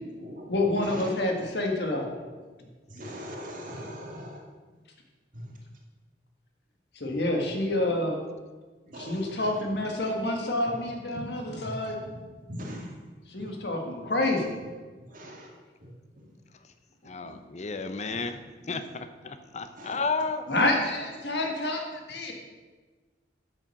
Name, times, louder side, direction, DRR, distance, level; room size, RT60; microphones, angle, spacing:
voice 1, 0.5-2.1 6.9-8.2 9.0-12.0 13.3-14.5 20.5-21.8 22.1-22.3, left 2 dB, 70° left, 2 dB, 1.7 m, -28 dB
voice 2, 3.0-4.4 8.9-9.2 12.5-12.9 15.1-15.4 19.8-20.0, equal, 50° right, -1 dB, 2.0 m, -39 dB
voice 3, 17.1-18.4 18.7-20.4, left 4 dB, 40° left, 9 dB, 0.6 m, -32 dB
8.6 x 6.4 x 6.4 m, 1.4 s
head